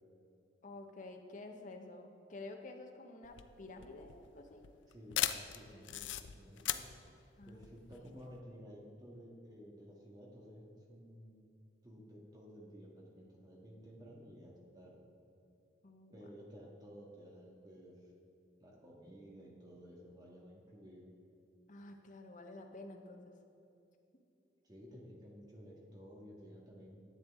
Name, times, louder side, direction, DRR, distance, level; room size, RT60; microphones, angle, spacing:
voice 1, 0.6-4.6 7.4-7.7 8.0-8.1 15.8-16.2 21.7-23.3, left 2 dB, 45° left, 4 dB, 0.8 m, -50 dB
sound 1, 3.2-8.4, left 12 dB, 80° left, 0.4 m, -39 dB
voice 2, 4.9-6.9 7.4-11.4 11.8-15.0 16.1-18.1 18.6-21.1 24.6-27.0, equal, 20° right, -3 dB, 1.6 m, -54 dB
11.0 x 8.0 x 3.6 m, 2.7 s
head